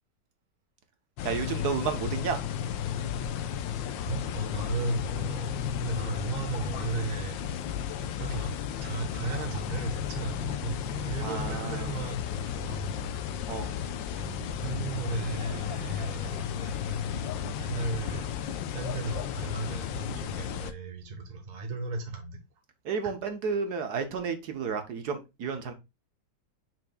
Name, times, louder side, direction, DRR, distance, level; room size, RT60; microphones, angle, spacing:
sound 1, 1.2-20.7, left 9 dB, 75° left, 1.3 m, -34 dB
voice 1, 1.2-2.4 11.2-12.0 13.5-13.7 22.8-25.7, right 5 dB, 60° right, 1.3 m, -32 dB
voice 2, 4.1-7.4 8.2-8.5 8.8-13.1 14.1-18.3 18.7-22.4, right 3 dB, 35° right, 0.7 m, -35 dB
7.1 x 6.0 x 2.2 m
omnidirectional pair, 2.2 m